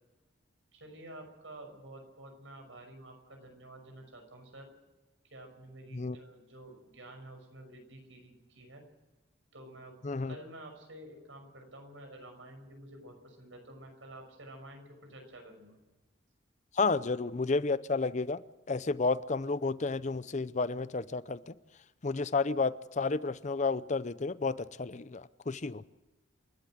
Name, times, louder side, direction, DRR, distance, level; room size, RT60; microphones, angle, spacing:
voice 1, 0.7-4.7 5.2-8.8 9.5-10.0 10.2-14.8 15.1-15.8, right 1 dB, 85° right, 5 dB, 6.1 m, -50 dB
voice 2, 10.0-10.4 16.8-18.4 18.7-21.5 22.0-25.8, left 4 dB, 40° left, 16 dB, 0.6 m, -31 dB
28.0 x 12.5 x 7.8 m, 1.1 s
head